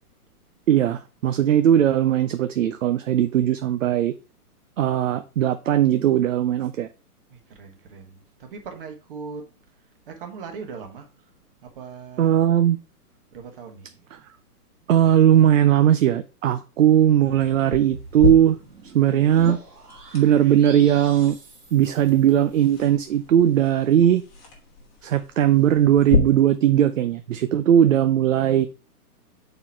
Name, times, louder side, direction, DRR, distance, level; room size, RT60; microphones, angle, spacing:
voice 1, 0.7-4.1 4.8-6.9 12.2-12.8 14.9-18.6 18.9-19.6 20.1-21.4 21.7-24.2 25.0-28.7, right 10 dB, 55° right, 0.5 m, -18 dB
voice 2, 7.3-9.5 10.1-11.3 11.6-12.4 13.3-13.9, right 5 dB, 35° right, 1.5 m, -39 dB
sound 1, 16.9-22.7, right 3 dB, 90° right, 2.5 m, -44 dB
sound 2, 17.7-26.2, left 6 dB, 15° left, 1.2 m, -33 dB
6.8 x 4.4 x 4.5 m
hypercardioid pair, 165°, 46 cm